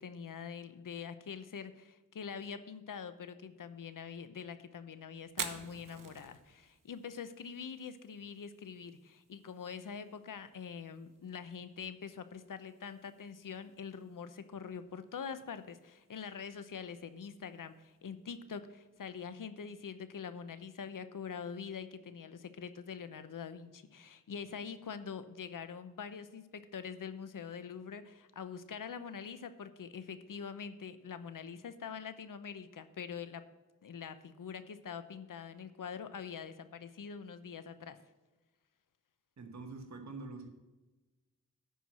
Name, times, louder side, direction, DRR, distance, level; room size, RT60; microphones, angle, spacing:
voice 1, 0.0-33.4 33.8-38.0, left 6 dB, 75° left, 12 dB, 0.8 m, -44 dB
Fire, 5.3-19.1, right 6 dB, 75° right, 1.0 m, -51 dB
voice 2, 39.4-40.5, right 3 dB, 55° right, 4 dB, 1.3 m, -45 dB
11.0 x 4.7 x 7.4 m, 1.2 s
cardioid pair, 60°, 32 cm